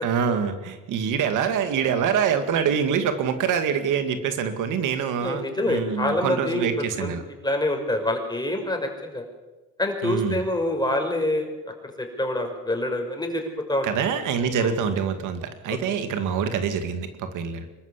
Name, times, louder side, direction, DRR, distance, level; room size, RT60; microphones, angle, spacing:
voice 1, 0.0-7.2 10.0-10.4 13.8-17.7, right 7 dB, 85° right, 8 dB, 2.3 m, -25 dB
voice 2, 5.2-7.1 7.4-9.2 9.8-11.7 12.0-13.9 14.6-14.7 15.7-16.0, left 1 dB, 15° left, 3 dB, 5.5 m, -26 dB
25.0 x 14.0 x 8.4 m, 1.2 s
cardioid pair, 90°, 30 cm